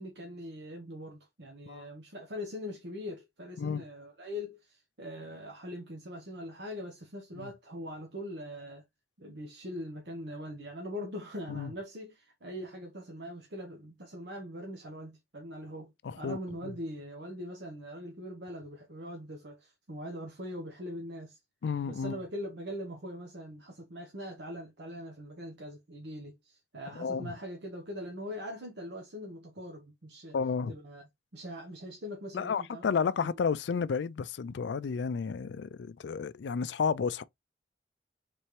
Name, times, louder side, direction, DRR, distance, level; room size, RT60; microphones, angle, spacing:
voice 1, 0.0-8.8 9.2-21.4 21.8-30.4 30.7-31.1 31.3-33.3, equal, 75° right, 1.0 m, -42 dB
voice 2, 16.0-16.4 16.6-16.7 21.6-22.2 27.0-27.3 30.3-30.8 32.3-37.2, left 5 dB, 80° left, 0.4 m, -32 dB
4.3 x 3.4 x 3.1 m
head